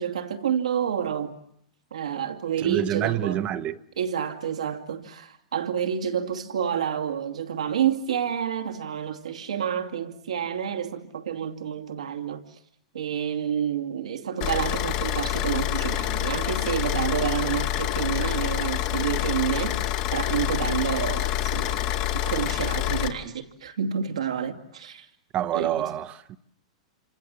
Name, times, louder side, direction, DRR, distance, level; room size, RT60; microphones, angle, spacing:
voice 1, 0.0-1.3 1.9-3.4 4.0-12.4 12.9-25.1 25.5-25.9, right 8 dB, 80° right, 2.7 m, -29 dB
voice 2, 2.6-3.8 25.3-26.4, right 11 dB, 35° right, 1.3 m, -27 dB
Car / Idling, 14.4-23.1, left 12 dB, 50° left, 2.4 m, -27 dB
27.5 x 27.0 x 7.8 m
hypercardioid pair, 110°, 3 cm